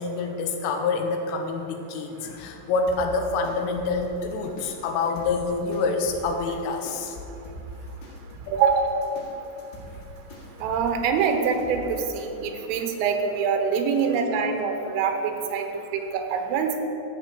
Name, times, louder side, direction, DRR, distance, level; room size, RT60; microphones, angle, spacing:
voice 1, 0.0-7.2, left 4 dB, 80° left, 4 dB, 3.5 m, -27 dB
sound 1, 2.9-12.0, equal, 65° left, 3.7 m, -43 dB
voice 2, 8.5-9.0 10.6-16.8, right 6 dB, 90° right, 5 dB, 3.5 m, -25 dB
13.5 x 5.3 x 7.5 m, 3.0 s
omnidirectional pair, 5.7 m